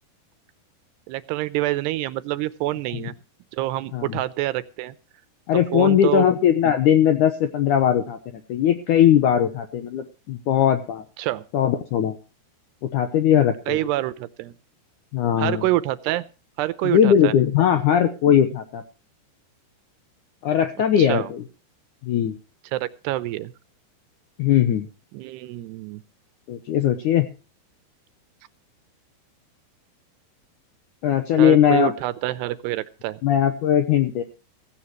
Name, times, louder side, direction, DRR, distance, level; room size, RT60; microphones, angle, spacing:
voice 1, 1.1-3.2 3.5-5.0 5.7-6.3 6.6-6.7 11.2-11.4 13.7-14.5 15.4-16.3 16.6-17.3 21.0-21.3 22.7-23.5 25.1-26.0 31.4-33.2, right 16 dB, 80° right, 15 dB, 2.8 m, -26 dB
voice 2, 5.5-8.2 8.5-11.0 11.5-12.1 12.9-13.8 15.1-15.7 16.8-18.8 20.4-21.4 22.0-22.3 24.4-24.9 26.5-27.3 31.0-31.9 33.2-34.2, left 9 dB, 75° left, 8 dB, 1.8 m, -19 dB
16.5 x 15.5 x 3.0 m, 0.33 s
omnidirectional pair, 4.9 m